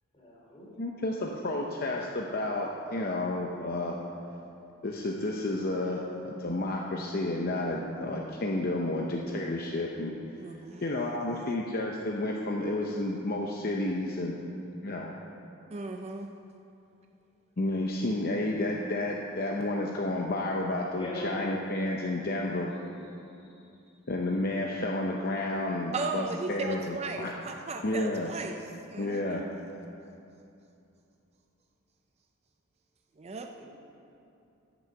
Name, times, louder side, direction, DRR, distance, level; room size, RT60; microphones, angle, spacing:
voice 1, 0.1-0.7 2.9-3.2 20.9-21.4 23.5-23.7 33.3-33.7, left 1 dB, 25° left, -5 dB, 2.9 m, -43 dB
voice 2, 0.8-4.0 4.8-10.1 10.8-14.4 14.8-15.1 17.6-22.7 24.1-27.3 27.8-28.3 29.0-29.5, left 2 dB, 45° left, -1 dB, 0.7 m, -31 dB
voice 3, 10.4-10.8 15.7-16.3 25.9-28.6 28.9-29.5 33.2-33.5, right 3 dB, 30° right, 4 dB, 0.4 m, -36 dB
11.5 x 6.2 x 7.6 m, 2.7 s
head